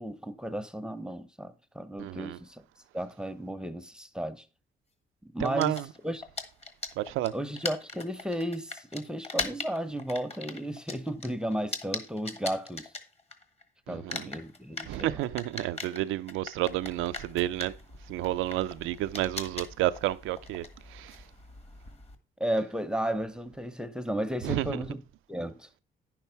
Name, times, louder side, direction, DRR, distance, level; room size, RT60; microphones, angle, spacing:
voice 1, 0.0-2.6 2.9-4.4 5.2-6.2 7.3-12.9 13.9-15.2 22.4-25.0 25.3-25.7, right 1 dB, 5° right, 0.7 m, -34 dB
voice 2, 2.0-2.4 5.4-5.9 7.0-7.3 13.9-14.3 14.9-17.7 18.1-21.2 24.4-24.8, right 14 dB, 90° right, 0.5 m, -31 dB
sound 1, 5.4-13.6 13.9-22.2, left 3 dB, 30° left, 1.6 m, -40 dB
10.0 x 6.0 x 4.5 m
cardioid pair, 90°, 20 cm